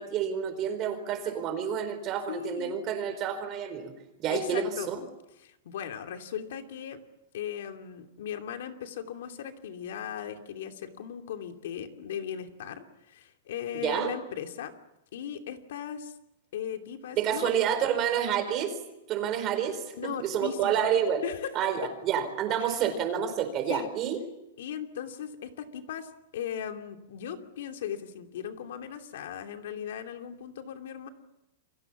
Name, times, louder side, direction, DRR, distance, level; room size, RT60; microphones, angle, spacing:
voice 1, 0.0-3.9 4.2-5.0 13.8-14.1 17.2-18.7 19.1-21.2 21.5-24.2, right 8 dB, 25° right, 8 dB, 4.3 m, -29 dB
voice 2, 2.3-2.8 4.3-4.9 5.4-7.0 7.3-14.7 15.1-16.1 16.5-17.5 19.9-20.7 21.2-21.5 22.6-22.8 23.7-23.9 24.6-31.1, left 9 dB, 65° left, 5 dB, 2.8 m, -38 dB
29.0 x 24.5 x 7.4 m, 0.87 s
supercardioid pair, 165°, 0 cm